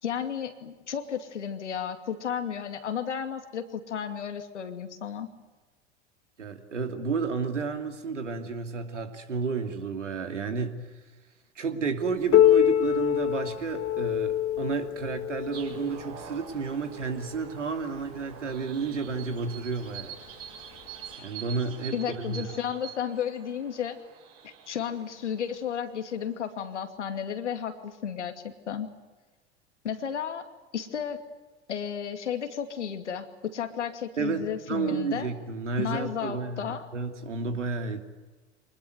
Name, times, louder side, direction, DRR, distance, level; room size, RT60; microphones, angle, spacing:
voice 1, 0.0-5.3 21.9-24.0 24.4-28.9 29.8-30.5 30.7-31.2 31.7-35.3 35.8-36.9, left 8 dB, 80° left, 7 dB, 2.6 m, -33 dB
voice 2, 6.4-10.8 11.5-20.2 21.2-21.9 22.2-22.4 34.2-36.6 36.9-38.0, right 5 dB, 85° right, 6 dB, 2.9 m, -31 dB
Piano, 12.3-17.6 18.5-18.6 19.1-19.2 20.0-20.1 21.1-21.2, left 12 dB, 40° left, 1.3 m, -25 dB
sound 1, 15.5-26.6, right 8 dB, 40° right, 6.7 m, -46 dB
25.5 x 20.5 x 9.5 m, 1.2 s
figure-of-eight pair, 85°, 35 cm